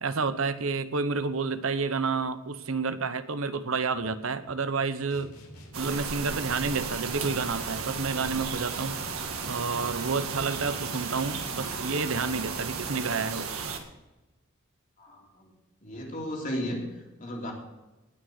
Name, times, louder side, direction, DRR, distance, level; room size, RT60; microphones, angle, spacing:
voice 1, 0.0-5.3 5.8-9.0 9.5-13.5, right 4 dB, 70° right, 12 dB, 0.9 m, -30 dB
sound 1, 5.1-12.9, left 1 dB, 85° left, 3.6 m, -48 dB
sound 2, 5.7-13.8, right 5 dB, 85° right, 1.9 m, -34 dB
voice 2, 15.0-15.5 15.8-17.5, equal, 40° left, -1 dB, 3.4 m, -35 dB
19.0 x 6.4 x 6.5 m, 1.1 s
head